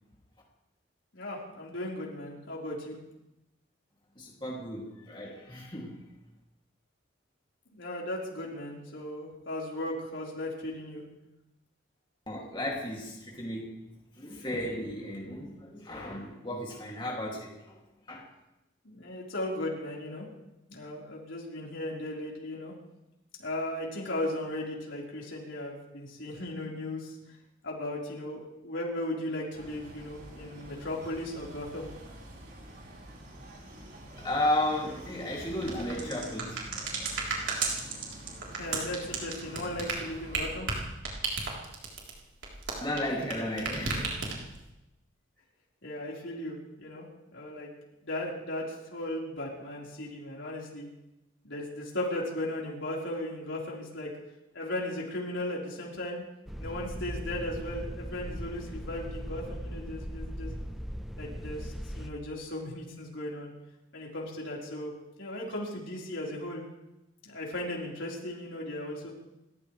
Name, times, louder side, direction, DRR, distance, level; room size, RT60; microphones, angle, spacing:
voice 1, 1.1-3.0 7.7-11.0 18.8-20.2 20.7-22.7 23.4-27.2 27.6-31.9 38.5-40.7 45.8-47.0 47.3-47.7 48.0-50.9 51.4-54.1 54.5-56.2 56.6-60.6 61.2-63.5 63.9-64.9 65.2-66.6 67.2-69.1, left 1 dB, 75° left, -3 dB, 4.3 m, -36 dB
voice 2, 4.2-6.0 12.3-13.7 14.2-17.8 18.1-18.2 34.1-37.0 42.8-44.1, left 1 dB, 25° left, -3 dB, 2.6 m, -34 dB
sound 1, 29.5-40.6, right 1 dB, 55° right, 4.5 m, -47 dB
sound 2, 35.6-43.3 43.6-44.6, right 4 dB, 75° right, 3.7 m, -33 dB
sound 3, 56.5-62.1, equal, ahead, 0.9 m, -39 dB
29.0 x 14.5 x 3.3 m, 0.93 s
head